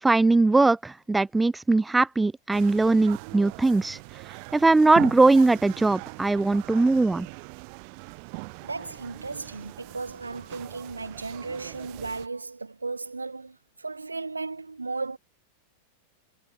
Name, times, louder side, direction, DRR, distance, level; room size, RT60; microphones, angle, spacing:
voice 1, 0.0-4.0 4.5-7.3, right 3 dB, 10° right, 0.3 m, -20 dB
sound 1, 2.5-12.3, right 39 dB, 45° right, 4.3 m, -41 dB
voice 2, 8.6-15.2, right 3 dB, 80° right, 1.9 m, -35 dB
figure-of-eight pair, 90°, 0 cm